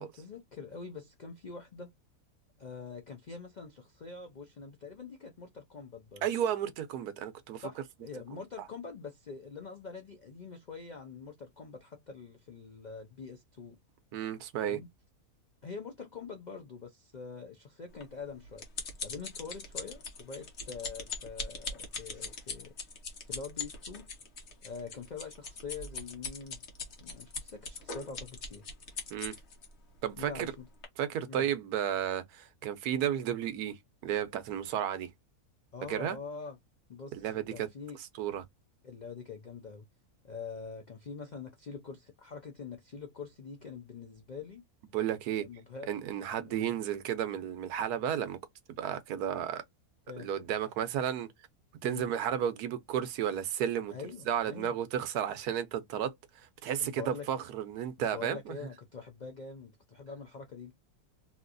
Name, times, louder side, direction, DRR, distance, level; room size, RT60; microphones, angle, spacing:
voice 1, 0.0-1.9 2.6-6.3 7.6-13.8 14.6-14.9 15.6-18.6 19.0-22.7 23.2-24.1 24.6-26.6 27.0-28.6 30.2-30.7 31.3-31.5 35.7-36.6 36.9-38.0 38.8-39.8 40.2-44.6 45.4-46.0 46.4-46.8 50.1-50.3 51.8-52.1 53.9-54.8 56.8-57.3 58.1-60.7, left 5 dB, 90° left, 0.4 m, -44 dB
voice 2, 6.2-7.7 14.1-14.8 29.1-29.4 30.0-30.5 31.0-35.1 35.9-36.2 37.1-37.7 38.2-38.4 44.9-45.4 45.9-48.4 48.8-49.6 50.2-51.3 51.8-53.9 54.3-58.6, right 9 dB, 90° right, 1.2 m, -33 dB
sound 1, 18.0-29.7 30.3-30.5 30.8-30.9, left 4 dB, 50° left, 1.2 m, -40 dB
3.1 x 2.8 x 2.5 m
omnidirectional pair, 1.6 m